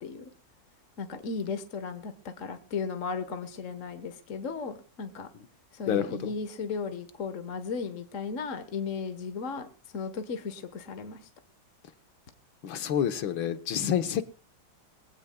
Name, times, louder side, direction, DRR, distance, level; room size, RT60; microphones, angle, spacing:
voice 1, 1.0-5.3 5.7-9.7 9.9-11.3 13.8-14.0, left 5 dB, 45° left, 8 dB, 1.4 m, -35 dB
voice 2, 5.9-6.3 12.6-14.2, left 9 dB, 80° left, 11 dB, 1.9 m, -28 dB
22.5 x 17.0 x 2.2 m, 0.34 s
omnidirectional pair, 2.1 m